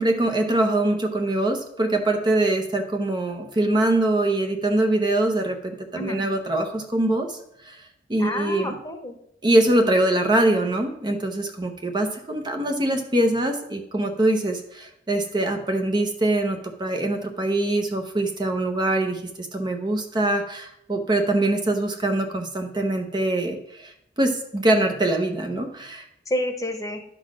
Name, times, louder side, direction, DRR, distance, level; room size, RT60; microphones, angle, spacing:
voice 1, 0.0-7.4 7.6-7.8 8.1-8.8 9.4-23.9 24.2-26.0, right 1 dB, 25° right, 4 dB, 0.7 m, -23 dB
voice 2, 5.9-6.2 8.2-9.2 26.3-27.0, left 1 dB, 20° left, 5 dB, 1.0 m, -29 dB
11.0 x 3.9 x 6.1 m, 0.74 s
head